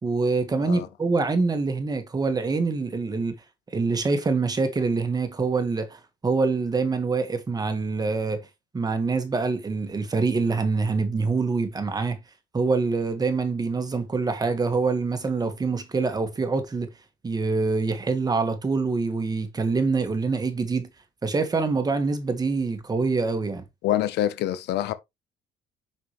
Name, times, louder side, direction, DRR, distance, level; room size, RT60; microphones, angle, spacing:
voice 1, 0.0-3.3 3.7-8.4 8.7-12.2 12.5-16.9 17.2-20.9 21.2-23.6, right 4 dB, 25° right, 1.4 m, -25 dB
voice 2, 23.8-24.9, left 12 dB, 80° left, 0.8 m, -26 dB
5.9 x 5.6 x 3.1 m
cardioid pair, 110°, 17 cm